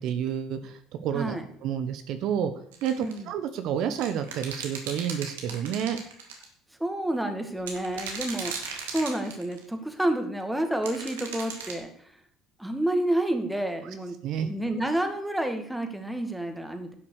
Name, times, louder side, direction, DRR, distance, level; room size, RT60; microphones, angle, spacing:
voice 1, 0.0-1.3 1.6-2.5 2.8-6.0 14.2-14.5, right 9 dB, 65° right, 9 dB, 1.1 m, -29 dB
voice 2, 1.1-1.5 3.0-3.3 6.8-12.1 12.6-16.9, right 1 dB, 5° right, 6 dB, 2.1 m, -29 dB
sound 1, 2.7-3.2 4.0-6.4 7.6-9.6 10.8-11.8, right 5 dB, 90° right, 2.0 m, -37 dB
11.0 x 5.9 x 6.6 m, 0.63 s
hypercardioid pair, 70°, 0 cm